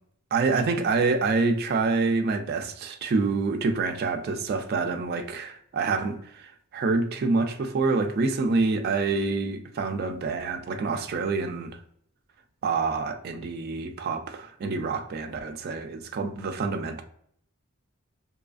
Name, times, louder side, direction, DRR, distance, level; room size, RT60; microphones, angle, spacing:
voice 1, 0.3-11.7 12.6-17.0, right 4 dB, 50° right, 0.3 m, -27 dB
2.7 x 2.4 x 2.3 m
head